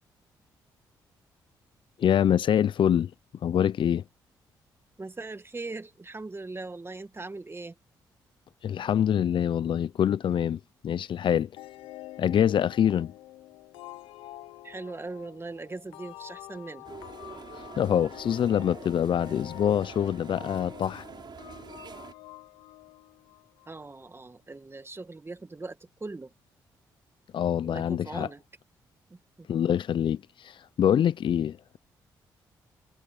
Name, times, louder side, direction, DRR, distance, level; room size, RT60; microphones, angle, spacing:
voice 1, 2.0-3.1 3.4-4.0 8.6-11.5 12.2-13.1 17.8-21.0 27.3-28.3 29.5-31.6, left 9 dB, 60° left, 0.8 m, -25 dB
voice 2, 5.0-7.7 14.6-16.9 23.7-26.3 27.6-28.4 29.4-29.5, right 3 dB, 25° right, 2.2 m, -40 dB
sound 1, 11.6-24.0, left 17 dB, 85° left, 1.2 m, -47 dB
sound 2, 16.8-22.1, right 6 dB, 55° right, 7.4 m, -45 dB
supercardioid pair, 50°, 9 cm